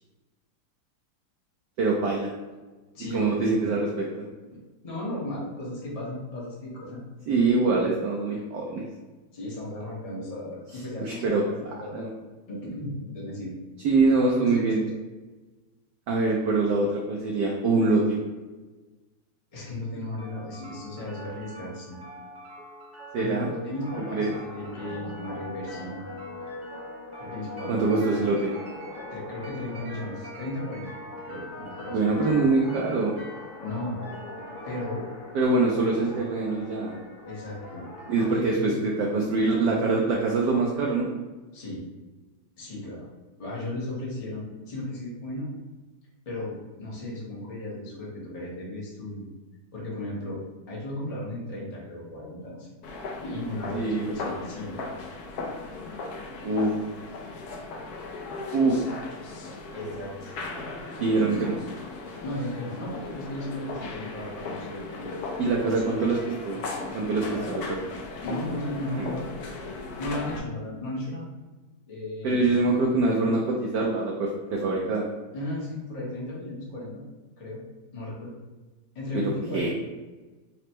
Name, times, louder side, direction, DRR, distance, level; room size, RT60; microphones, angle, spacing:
voice 1, 1.8-2.3 3.1-4.1 7.3-8.8 11.0-11.4 11.9-12.1 13.8-14.8 16.1-18.2 23.1-23.5 24.1-24.3 27.7-28.5 31.9-33.1 35.3-36.9 38.1-41.1 53.7-54.1 56.4-56.7 58.5-58.8 61.0-61.6 65.4-66.2 66.4-66.6 66.9-67.8 68.9-69.1 72.2-75.1 79.1-79.2 79.5-79.7, right 3 dB, 80° right, -1 dB, 0.9 m, -24 dB
voice 2, 2.9-3.8 4.8-7.0 9.3-12.2 12.5-13.5 14.2-14.8 19.5-22.0 23.2-26.0 27.2-28.2 29.1-30.9 31.2-32.5 33.6-34.0 34.7-35.0 37.2-37.9 38.2-38.8 39.5-40.3 41.5-41.8 42.6-43.1 43.4-45.5 46.2-49.2 49.7-50.4 50.7-52.7 53.2-54.7 59.7-60.4 61.1-61.5 62.2-65.2 65.6-66.2 67.2-67.6 68.2-69.3 70.0-71.3 71.9-72.5 75.3-77.0 77.4-77.6 77.9-78.3 78.9-79.7, left 1 dB, 40° left, -5 dB, 0.5 m, -35 dB
sound 1, 20.2-36.2, right 1 dB, 50° right, 0.5 m, -45 dB
sound 2, 23.8-38.3, left 2 dB, 70° left, 1.2 m, -42 dB
sound 3, 52.8-70.4, left 3 dB, 85° left, 0.8 m, -37 dB
4.1 x 2.1 x 4.3 m, 1.2 s
omnidirectional pair, 2.4 m